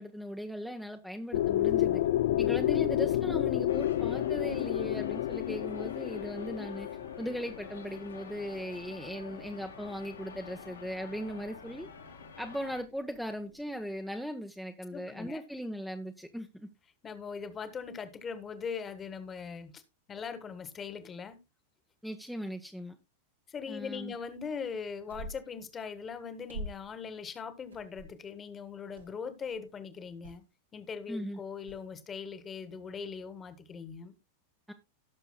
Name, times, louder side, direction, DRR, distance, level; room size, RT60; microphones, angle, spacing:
voice 1, 0.0-2.0 2.4-6.9 7.2-11.9 12.4-16.7 22.0-23.0 23.7-24.1 31.1-31.4 34.7-34.8, equal, ahead, 0.9 m, -38 dB
sound 1, 1.3-9.2, left 13 dB, 55° left, 0.5 m, -30 dB
voice 2, 2.7-3.1 14.9-15.4 17.0-19.8 20.1-21.4 23.5-30.4 30.7-34.1, left 6 dB, 20° left, 1.5 m, -40 dB
sound 2, 3.7-12.8, left 5 dB, 70° left, 2.2 m, -48 dB
sound 3, 25.1-25.6 26.5-27.0 27.7-28.3 29.0-29.1 29.4-29.7 30.2-30.4 31.7-31.8, right 1 dB, 75° right, 2.3 m, -43 dB
17.5 x 6.7 x 2.2 m
figure-of-eight pair, 90°, 0 cm